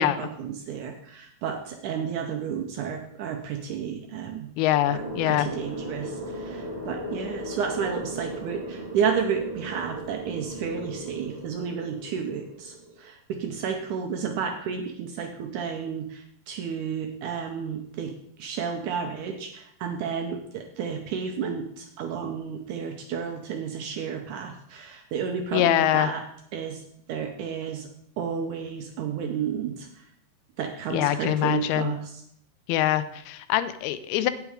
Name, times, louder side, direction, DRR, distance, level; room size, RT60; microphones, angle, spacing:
voice 1, 0.0-4.5 4.9-26.2 26.5-27.9 28.2-30.1 30.6-32.2, right 7 dB, 75° right, 4 dB, 1.9 m, -32 dB
voice 2, 4.6-5.5 25.5-26.1 30.9-31.9 32.7-34.3, left 12 dB, 85° left, 13 dB, 2.5 m, -24 dB
sound 1, 4.9-12.9, right 1 dB, 15° right, 2.7 m, -37 dB
9.0 x 8.2 x 4.9 m, 0.69 s
omnidirectional pair, 4.3 m